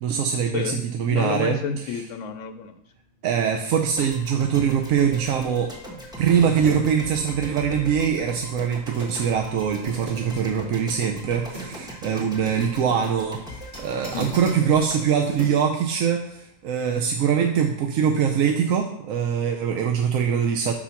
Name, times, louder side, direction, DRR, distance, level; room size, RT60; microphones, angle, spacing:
voice 1, 0.0-1.6 3.2-5.7 6.2-20.7, right 7 dB, 85° right, 2 dB, 1.0 m, -23 dB
voice 2, 0.5-2.8 14.1-14.4, left 6 dB, 80° left, 7 dB, 1.0 m, -30 dB
sound 1, 1.1-15.8 16.2-16.4, right 1 dB, 45° right, 2.3 m, -43 dB
sound 2, 4.0-16.2, equal, 5° right, 1.0 m, -40 dB
5.7 x 4.4 x 5.7 m, 0.74 s
omnidirectional pair, 1.3 m